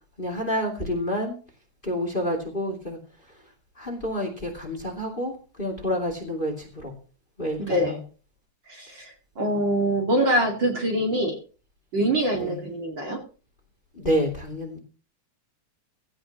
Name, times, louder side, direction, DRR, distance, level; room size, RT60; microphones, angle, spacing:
voice 1, 0.2-1.4 1.8-3.0 3.8-5.3 5.6-6.9 7.4-8.0 12.3-12.6 13.9-14.8, equal, 20° left, 4 dB, 2.6 m, -28 dB
voice 2, 7.6-8.0 8.7-11.4 11.9-13.2, right 1 dB, 40° right, 2 dB, 2.8 m, -24 dB
16.5 x 13.5 x 3.0 m, 0.36 s
omnidirectional pair, 3.3 m